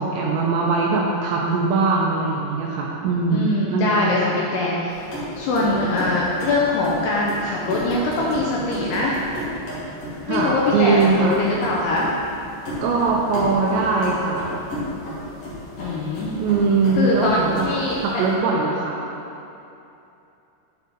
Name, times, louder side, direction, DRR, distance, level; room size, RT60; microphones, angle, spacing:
voice 1, 0.0-4.1 5.7-5.8 10.3-11.4 12.8-14.5 16.4-17.7 18.0-19.0, right 4 dB, 85° right, -2 dB, 2.6 m, -21 dB
voice 2, 3.3-5.0 5.4-9.2 10.3-12.1 15.8-16.4 16.9-18.2, left 2 dB, 80° left, -4 dB, 2.4 m, -22 dB
sound 1, 4.9-18.3, left 1 dB, 65° left, 1.6 m, -33 dB
9.2 x 4.8 x 3.8 m, 2.8 s
omnidirectional pair, 5.5 m